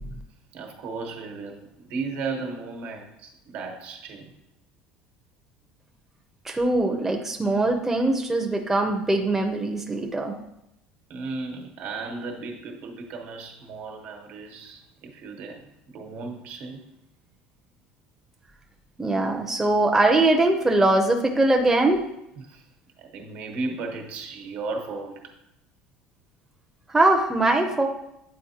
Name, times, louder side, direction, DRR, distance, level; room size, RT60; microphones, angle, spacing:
voice 1, 0.5-4.3 6.8-7.2 11.1-16.9 22.4-22.7 23.0-25.4, right 3 dB, 60° right, 3 dB, 1.1 m, -35 dB
voice 2, 6.4-10.3 19.0-22.0 26.9-27.9, right 2 dB, 10° right, 1 dB, 0.6 m, -21 dB
8.5 x 4.1 x 2.8 m, 0.82 s
cardioid pair, 135°, 3 cm